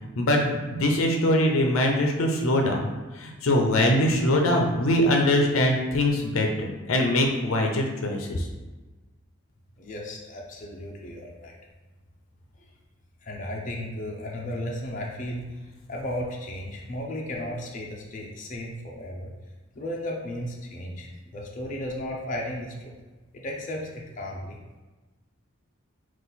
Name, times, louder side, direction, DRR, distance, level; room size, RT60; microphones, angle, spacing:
voice 1, 0.2-2.9 3.2-8.5, left 1 dB, 85° left, 2 dB, 0.6 m, -23 dB
voice 2, 9.8-11.6 13.2-15.6 15.9-19.3 19.7-22.9 23.3-24.8, left 1 dB, 40° left, -2 dB, 0.6 m, -35 dB
3.9 x 2.5 x 4.0 m, 1.2 s
head